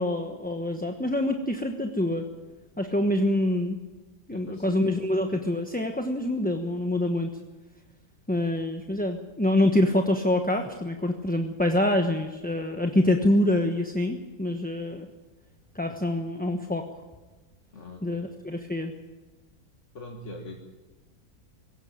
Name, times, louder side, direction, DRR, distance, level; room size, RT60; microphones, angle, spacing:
voice 1, 0.0-2.3 2.8-3.8 4.3-7.3 8.3-15.1 15.7-16.9 18.0-18.9, left 1 dB, 5° left, 4 dB, 1.0 m, -26 dB
voice 2, 4.3-4.9 17.7-18.3 19.9-20.6, left 2 dB, 50° left, 1 dB, 2.1 m, -42 dB
19.5 x 17.5 x 9.0 m, 1.2 s
omnidirectional pair, 1.6 m